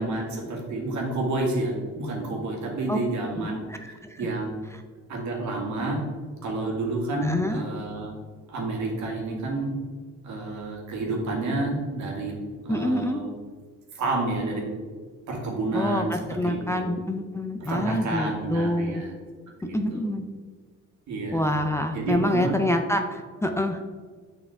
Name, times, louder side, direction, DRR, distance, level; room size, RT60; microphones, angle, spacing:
voice 1, 0.0-4.5 5.1-6.0 6.4-8.1 8.5-9.8 10.2-13.3 13.9-14.7 15.3-16.1 16.4-16.8 17.6-19.1 19.6-20.0 21.1-21.4 21.9-22.5, right 2 dB, 70° right, -1 dB, 2.0 m, -29 dB
voice 2, 3.4-4.3 7.2-7.7 12.7-13.2 15.7-19.0 19.7-20.2 21.3-23.8, left 1 dB, 10° left, 4 dB, 0.5 m, -27 dB
6.8 x 5.7 x 3.5 m, 1.5 s
cardioid pair, 90°, 30 cm